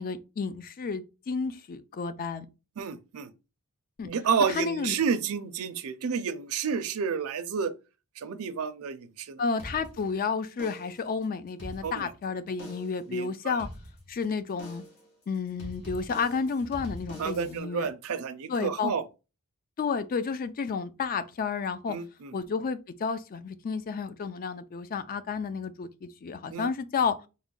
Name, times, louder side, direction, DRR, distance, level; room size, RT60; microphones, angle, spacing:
voice 1, 0.0-2.5 4.0-4.1 4.5-4.9 9.4-13.7 14.1-14.8 15.3-17.9 18.5-18.9 19.8-22.0 22.3-27.2, left 5 dB, 40° left, 0.4 m, -31 dB
voice 2, 2.8-3.3 4.0-7.7 8.2-9.4 11.8-12.1 13.1-13.6 17.2-19.0 21.9-22.3 26.5-26.7, right 6 dB, 70° right, 0.4 m, -30 dB
sound 1, 9.6-10.2 10.6-11.1 11.5-12.2 12.6-13.1 13.6-14.2 14.6-15.1 15.6-17.6, equal, 65° left, 1.5 m, -43 dB
3.6 x 2.1 x 3.7 m
head